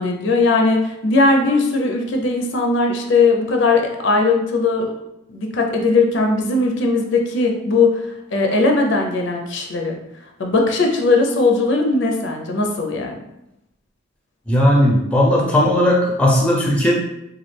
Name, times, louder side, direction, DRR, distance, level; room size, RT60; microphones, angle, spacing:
voice 1, 0.0-4.9 5.3-10.0 10.4-13.2, left 3 dB, 60° left, 2 dB, 0.4 m, -18 dB
voice 2, 14.5-16.9, left 1 dB, 5° left, -2 dB, 0.5 m, -16 dB
3.1 x 2.2 x 3.2 m, 0.88 s
head